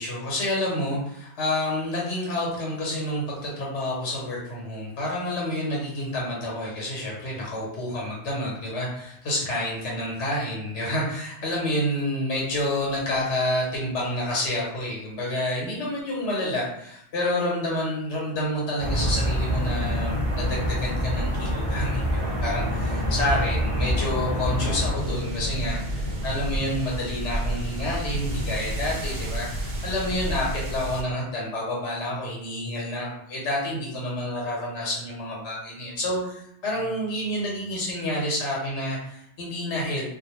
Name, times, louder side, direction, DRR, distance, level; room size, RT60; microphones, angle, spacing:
voice 1, 0.0-40.0, left 1 dB, 75° left, -4 dB, 1.1 m, -29 dB
sound 1, 18.8-24.9, equal, 35° right, 0.4 m, -26 dB
sound 2, 24.9-31.0, right 1 dB, 65° right, 0.8 m, -30 dB
2.3 x 2.2 x 3.0 m, 0.73 s
omnidirectional pair, 1.2 m